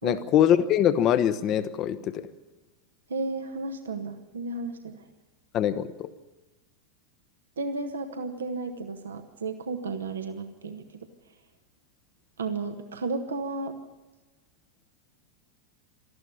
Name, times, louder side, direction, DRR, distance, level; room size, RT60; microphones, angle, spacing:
voice 1, 0.0-2.3 5.5-6.1, left 10 dB, 35° left, 13 dB, 1.0 m, -23 dB
voice 2, 3.1-5.0 7.6-10.8 12.4-13.8, right 3 dB, 70° right, 6 dB, 1.4 m, -33 dB
19.0 x 13.5 x 9.8 m, 1.2 s
figure-of-eight pair, 90°, 0 cm